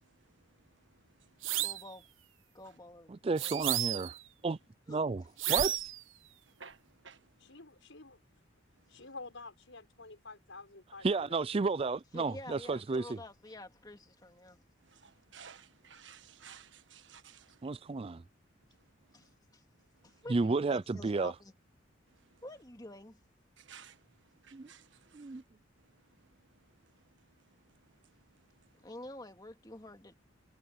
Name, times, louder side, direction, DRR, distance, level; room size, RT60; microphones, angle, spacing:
sound 1, 1.4-1.9 3.4-4.2 5.4-6.0, right 13 dB, 85° right, 1.1 m, -32 dB
voice 1, 1.6-2.1 2.5-3.7 4.9-5.0 12.1-14.6 19.1-19.6 20.0-21.5 22.4-23.2 28.8-30.1, left 1 dB, 20° left, 2.5 m, -49 dB
voice 2, 3.1-4.1 4.4-4.6 4.9-5.2 5.5-5.8 11.0-13.2 17.6-18.2 20.3-21.3 24.5-24.7 25.1-25.4, right 3 dB, 30° right, 0.4 m, -32 dB
voice 3, 7.4-8.2 8.9-11.3, left 3 dB, 75° left, 6.3 m, -49 dB
voice 4, 15.3-17.4 23.7-23.9 24.7-24.8, right 7 dB, 65° right, 1.5 m, -52 dB
head